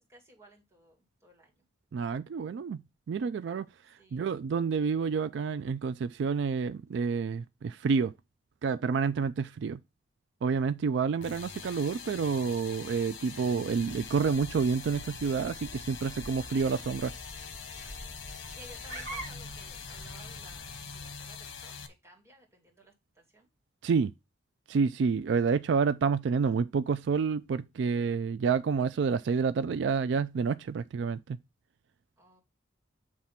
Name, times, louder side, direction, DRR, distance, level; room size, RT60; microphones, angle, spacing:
voice 1, 0.1-1.6 4.0-4.3 17.7-23.5 32.2-32.4, right 1 dB, 15° right, 2.2 m, -56 dB
voice 2, 1.9-2.8 3.1-8.1 8.6-9.8 10.4-17.1 23.8-24.1 24.7-31.4, right 5 dB, 65° right, 0.3 m, -29 dB
sound 1, 11.2-21.9, left 6 dB, 90° left, 1.0 m, -44 dB
sound 2, 13.7-21.7, right 1 dB, 35° right, 2.0 m, -47 dB
7.3 x 3.3 x 5.6 m
head